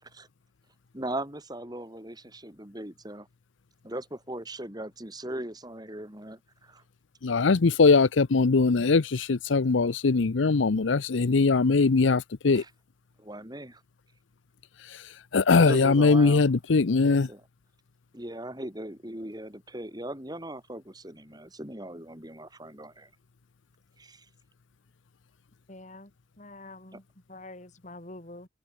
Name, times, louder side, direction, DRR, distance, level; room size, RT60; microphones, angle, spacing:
voice 1, 0.9-3.3 3.8-6.8 12.5-12.7 13.2-13.8 15.5-16.5 16.9-17.5 18.1-23.1 24.0-24.3 26.9-27.0, right 1 dB, 20° right, 5.6 m, -39 dB
voice 2, 7.2-12.6 15.3-17.3, left 4 dB, 85° left, 0.7 m, -21 dB
voice 3, 25.7-26.1 26.4-27.0 27.3-28.5, left 2 dB, 40° left, 2.9 m, -45 dB
head